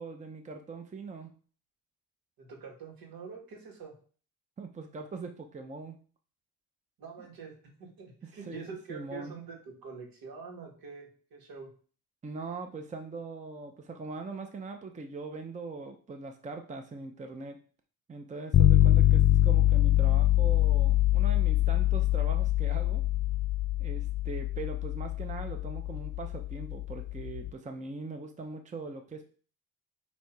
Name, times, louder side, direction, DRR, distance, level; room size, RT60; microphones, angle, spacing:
voice 1, 0.0-1.3 4.6-6.0 8.4-9.3 12.2-17.6 18.1-23.0 23.8-29.3, right 3 dB, 20° right, 5 dB, 0.6 m, -41 dB
voice 2, 2.4-3.9 7.0-7.5 7.8-11.7, right 5 dB, 75° right, 0 dB, 2.0 m, -45 dB
sound 1, 18.5-27.5, left 13 dB, 30° left, 0.4 m, -24 dB
8.3 x 2.9 x 4.6 m, 0.42 s
cardioid pair, 115°, 37 cm